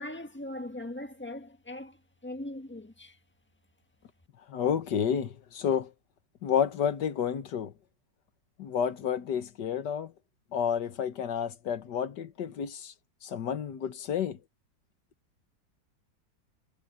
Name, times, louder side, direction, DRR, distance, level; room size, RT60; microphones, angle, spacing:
voice 1, 0.0-3.2, left 1 dB, 5° left, 1.4 m, -40 dB
voice 2, 4.5-5.9 6.4-7.7 8.6-10.1 10.5-12.9 13.2-14.4, left 8 dB, 70° left, 1.7 m, -30 dB
omnidirectional pair, 1.9 m